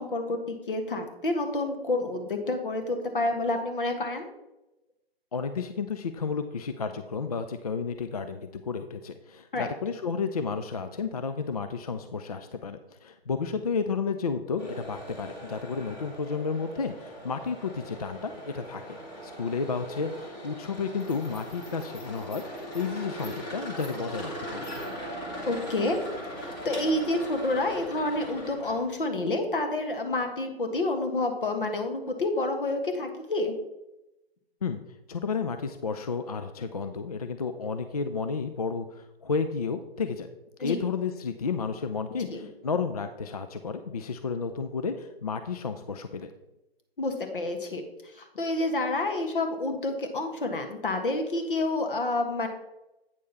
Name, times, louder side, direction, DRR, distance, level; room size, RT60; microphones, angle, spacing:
voice 1, 0.0-4.3 9.5-9.7 25.5-26.0 26.4-33.6 40.6-40.8 42.3-42.5 47.0-47.8 48.1-52.5, left 2 dB, 55° left, 5 dB, 1.6 m, -29 dB
voice 2, 5.3-24.7 34.6-34.8 35.1-40.3 40.6-46.3, left 5 dB, 40° left, 9 dB, 0.4 m, -32 dB
sound 1, 14.6-28.9, equal, 15° left, 1.6 m, -40 dB
8.8 x 6.4 x 4.0 m, 0.95 s
figure-of-eight pair, 135°, 31 cm